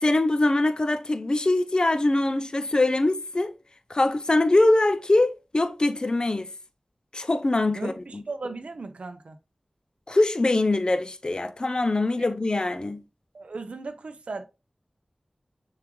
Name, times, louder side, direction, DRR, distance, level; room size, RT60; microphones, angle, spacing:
voice 1, 0.0-3.5 3.9-6.5 7.1-8.2 10.1-13.0, left 2 dB, 45° left, 0.5 m, -23 dB
voice 2, 7.7-9.4 12.2-12.3 13.3-14.4, right 3 dB, 90° right, 0.4 m, -37 dB
6.8 x 2.4 x 3.0 m
wide cardioid pair, 40°, 2 cm